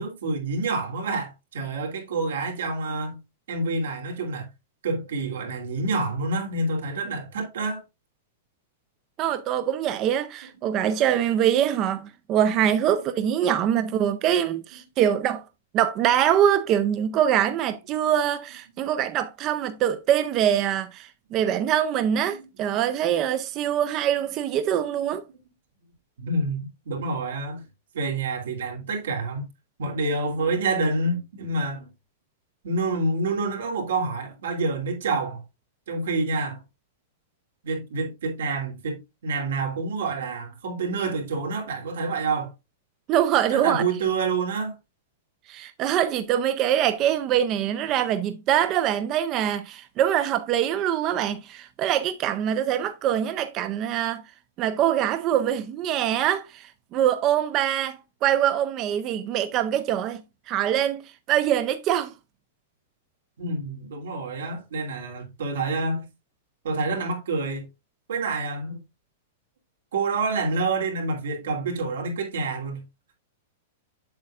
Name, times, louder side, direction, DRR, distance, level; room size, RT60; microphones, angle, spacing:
voice 1, 0.0-3.2 3.5-4.5 4.8-7.8 10.6-10.7 26.2-27.6 27.9-29.5 29.8-31.9 32.6-35.4 35.9-36.6 37.6-42.5 43.5-44.8 63.4-66.1 66.6-67.7 68.1-68.8 69.9-72.8, right 3 dB, 90° right, 2.7 m, -28 dB
voice 2, 9.2-15.4 15.7-25.2 43.1-43.8 45.5-54.2 54.6-62.1, right 10 dB, 25° right, 0.4 m, -24 dB
7.8 x 7.1 x 2.4 m
supercardioid pair, 165°, 0 cm